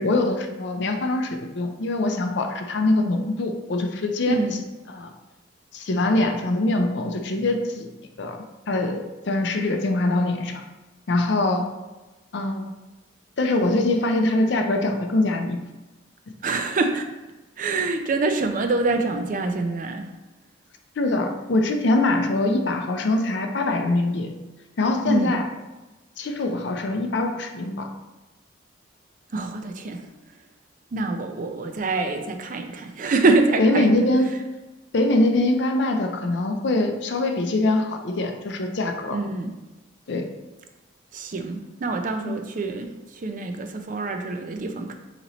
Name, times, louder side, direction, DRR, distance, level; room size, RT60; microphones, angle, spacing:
voice 1, 0.0-4.4 4.9-5.1 5.7-7.9 8.2-8.4 8.7-10.6 11.1-11.6 12.3-12.7 13.4-15.6 21.0-24.3 24.8-25.5 26.2-27.9 33.6-34.4 34.9-39.2 40.1-40.3 42.3-42.4, left 2 dB, 60° left, 4 dB, 0.5 m, -23 dB
voice 2, 16.4-17.0 17.6-20.1 25.0-25.4 29.3-30.1 30.9-33.9 39.1-39.5 41.1-44.9, right 3 dB, 40° right, 5 dB, 0.4 m, -25 dB
4.2 x 3.0 x 3.9 m, 1.1 s
head